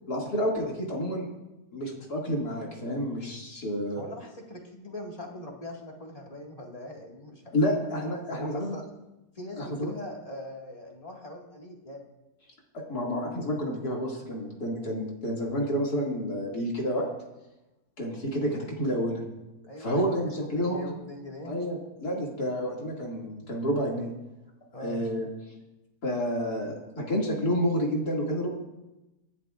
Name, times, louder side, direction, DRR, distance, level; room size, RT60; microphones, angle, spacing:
voice 1, 0.1-1.3 1.7-4.0 7.5-8.7 9.6-9.9 12.7-17.0 18.0-19.2 19.8-20.9 21.5-24.1 24.8-25.3 26.0-28.5, equal, 65° left, -2 dB, 2.9 m, -29 dB
voice 2, 3.9-7.5 8.3-8.8 9.4-12.1 19.7-20.2 20.5-21.6 24.7-25.1, left 1 dB, 20° left, -1 dB, 2.0 m, -41 dB
25.5 x 11.0 x 2.5 m, 0.99 s
omnidirectional pair, 1.8 m